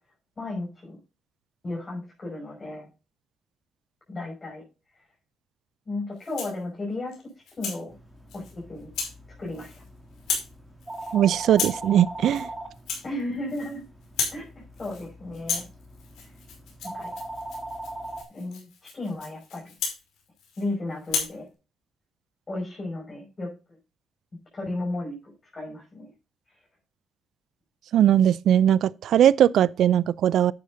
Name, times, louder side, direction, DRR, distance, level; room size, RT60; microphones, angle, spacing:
voice 1, 0.4-1.0 1.6-2.9 4.1-4.6 5.9-7.1 7.6-7.9 8.3-8.9 9.4-9.7 13.0-13.8 14.3-15.6 16.8-17.1 18.3-19.7 20.6-21.5 22.5-23.5 24.5-26.1, left 2 dB, 30° left, 5.7 m, -34 dB
Rattle (instrument), 6.2-6.6 7.1-7.8 8.3-8.5 8.9-9.2 9.5-9.9 10.1-10.5 10.8-11.1 11.5-11.9 12.2-12.5 12.7-13.8 14.0-14.4 14.7-15.1 15.3-20.7 21.0-21.4, left 5 dB, 80° left, 5.5 m, -34 dB
sound 1, 7.9-18.2, right 1 dB, 5° right, 2.6 m, -41 dB
voice 2, 11.1-12.5 27.9-30.5, right 10 dB, 75° right, 0.4 m, -20 dB
11.5 x 9.3 x 2.7 m
cardioid pair, 90°, 0 cm